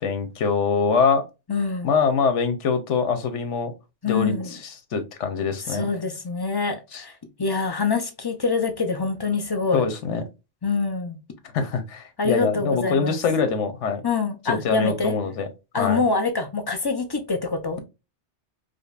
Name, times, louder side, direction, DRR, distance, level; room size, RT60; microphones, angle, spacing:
voice 1, 0.0-1.2 1.8-3.7 4.1-5.9 6.9-7.0 9.7-10.2 11.5-14.0 14.4-15.5 15.8-16.0, left 5 dB, 85° left, 1.1 m, -24 dB
voice 2, 1.5-1.9 4.0-4.5 5.7-9.8 10.6-11.2 12.2-13.2 14.0-15.1 15.7-17.8, left 4 dB, 30° left, 0.4 m, -25 dB
5.1 x 2.2 x 2.4 m
omnidirectional pair, 1.2 m